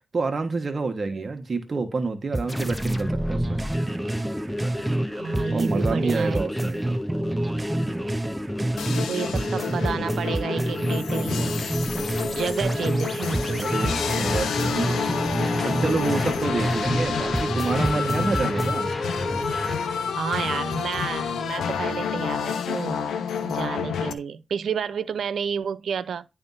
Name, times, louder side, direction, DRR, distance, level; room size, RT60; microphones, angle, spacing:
voice 1, 0.1-3.6 5.5-6.9 13.5-15.0 15.6-18.9, right 3 dB, 45° right, 1.3 m, -28 dB
sound 1, 2.3-5.1 5.3-9.1 9.3-13.1 13.3-17.1 17.3-18.8, right 1 dB, 15° right, 0.4 m, -28 dB
sound 2, 2.5-19.8, left 1 dB, 10° left, 1.2 m, -32 dB
voice 2, 5.1-6.5 8.9-11.6 12.0-13.8 20.1-23.0 23.4-26.3, right 6 dB, 75° right, 0.6 m, -30 dB
sound 3, 8.8-24.1, left 7 dB, 85° left, 1.0 m, -29 dB
10.5 x 3.5 x 5.5 m
cardioid pair, 65°, 0 cm